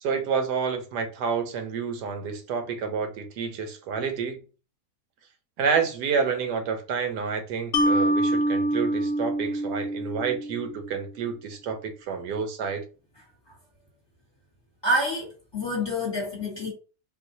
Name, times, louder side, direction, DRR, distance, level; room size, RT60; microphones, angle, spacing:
voice 1, 0.0-4.4 5.6-12.8, right 6 dB, 90° right, 1.3 m, -29 dB
Mallet percussion, 7.7-11.0, right 1 dB, 70° left, 0.8 m, -25 dB
voice 2, 14.8-16.7, equal, 20° left, 1.1 m, -27 dB
3.8 x 2.5 x 2.7 m
omnidirectional pair, 1.7 m